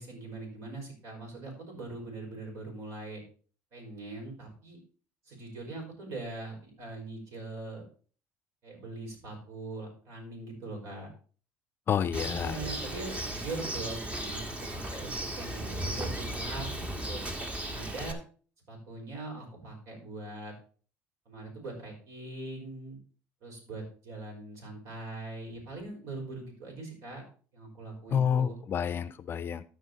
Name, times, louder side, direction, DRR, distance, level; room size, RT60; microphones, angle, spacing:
voice 1, 0.0-3.2 3.7-4.8 5.3-7.8 8.6-11.1 11.9-12.0 12.4-17.2 17.6-18.2 18.7-20.5 21.3-23.0 23.4-27.2 27.5-28.6, right 2 dB, 65° right, 0 dB, 5.2 m, -41 dB
voice 2, 11.9-12.6 28.1-29.6, left 8 dB, 40° left, 15 dB, 0.6 m, -29 dB
Bird, 12.1-18.1, right 1 dB, 20° right, 1.5 m, -36 dB
13.5 x 5.1 x 4.0 m, 0.41 s
supercardioid pair, 95°, 6 cm